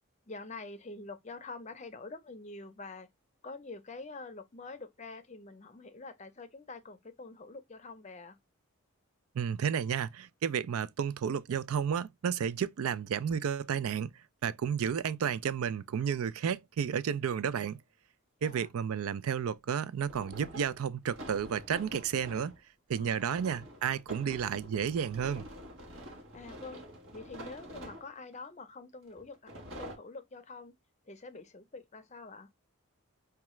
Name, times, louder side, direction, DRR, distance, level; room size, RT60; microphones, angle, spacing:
voice 1, 0.3-3.1 3.4-8.4 18.4-18.7 22.9-23.2 26.3-26.8 27.1-29.5 29.8-30.7 31.1-32.5, left 3 dB, 30° left, 0.5 m, -46 dB
voice 2, 9.4-14.1 14.4-17.8 18.4-22.5 22.9-25.4, right 7 dB, 80° right, 0.4 m, -32 dB
sound 1, 20.0-22.6 23.1-28.4 29.2-30.0, equal, 60° right, 1.3 m, -47 dB
4.6 x 2.3 x 3.0 m
head